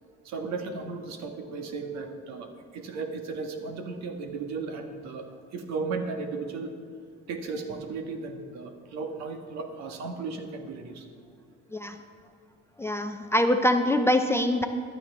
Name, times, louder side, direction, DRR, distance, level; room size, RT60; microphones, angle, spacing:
voice 1, 0.2-5.3 5.5-6.7 7.3-11.1, right 4 dB, 65° right, 5 dB, 1.6 m, -35 dB
voice 2, 12.8-14.7, left 1 dB, 10° left, 6 dB, 0.5 m, -24 dB
15.0 x 12.0 x 3.5 m, 2.3 s
cardioid pair, 135°, 29 cm